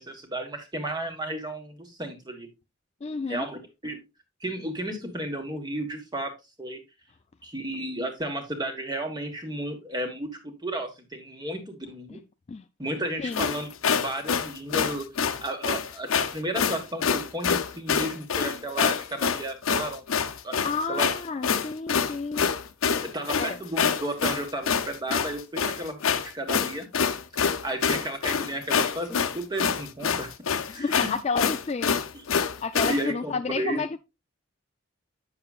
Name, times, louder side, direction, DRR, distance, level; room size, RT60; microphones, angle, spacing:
voice 1, 0.0-2.5 3.3-4.0 4.4-6.3 6.6-6.8 7.4-12.2 12.8-20.6 20.9-21.1 23.0-26.9 27.4-30.3 30.7-31.1 32.9-33.8, right 1 dB, 20° right, 1.4 m, -33 dB
voice 2, 3.0-3.5 12.1-12.2 12.5-12.6 13.2-13.4 20.6-22.5 23.4-23.6 30.7-32.0 32.6-34.0, left 4 dB, 30° left, 0.3 m, -31 dB
sound 1, 13.3-33.0, left 6 dB, 80° left, 0.6 m, -26 dB
8.5 x 6.8 x 2.4 m
head